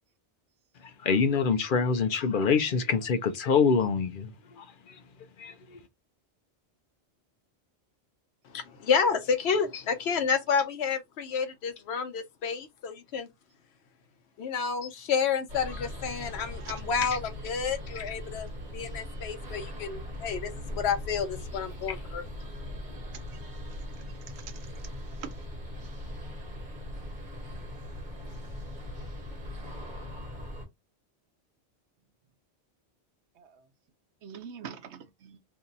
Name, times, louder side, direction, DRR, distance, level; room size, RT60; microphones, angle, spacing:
voice 1, 1.0-4.6 5.4-5.5, left 5 dB, 60° left, 0.6 m, -25 dB
voice 2, 8.5-13.3 14.4-18.5 18.7-22.2, left 6 dB, 75° left, 0.9 m, -30 dB
sound 1, 15.5-30.6, left 1 dB, 45° right, 1.3 m, -40 dB
voice 3, 24.4-24.7 25.2-25.4 33.4-33.6 34.2-35.4, right 8 dB, 85° right, 0.9 m, -44 dB
2.8 x 2.6 x 3.9 m
omnidirectional pair, 1.1 m